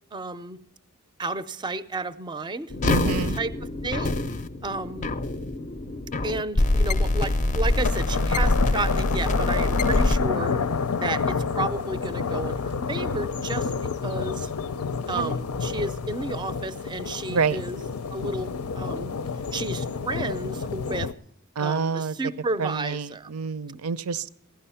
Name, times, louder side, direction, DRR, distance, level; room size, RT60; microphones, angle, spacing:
voice 1, 0.1-0.6 1.2-2.7 3.3-3.5 3.8-4.2 4.6-5.1 6.2-10.6 11.0-13.7 14.0-14.5 15.1-17.8 18.1-19.1 19.5-21.1 21.6-23.3, right 2 dB, 20° right, 14 dB, 0.5 m, -32 dB
sound 1, 2.7-10.2, left 2 dB, 35° left, 0.5 m, -25 dB
voice 2, 2.8-3.4 15.1-15.3 17.3-17.6 21.6-22.2 22.6-24.3, right 5 dB, 75° right, 16 dB, 0.6 m, -27 dB
sound 2, 7.7-21.1, left 5 dB, 85° left, 0.6 m, -29 dB
16.5 x 11.5 x 5.6 m, 0.65 s
head